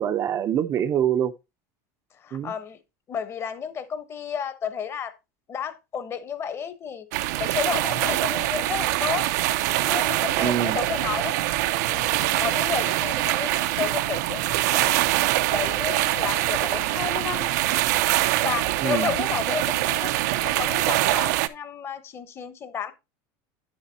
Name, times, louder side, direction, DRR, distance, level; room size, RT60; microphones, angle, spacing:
voice 1, 0.0-1.3 2.3-2.5 9.7-9.8 10.4-10.8 18.8-19.1, right 10 dB, 30° right, 0.5 m, -25 dB
voice 2, 2.2-2.8 3.1-5.1 5.5-7.1 7.4-9.3 9.8-11.4 11.6-15.0 15.3-17.5 18.4-20.1 20.4-22.9, left 7 dB, 30° left, 0.9 m, -32 dB
sound 1, 7.1-21.5, right 16 dB, 80° right, 0.6 m, -24 dB
9.8 x 7.3 x 2.7 m
supercardioid pair, 150°, 9 cm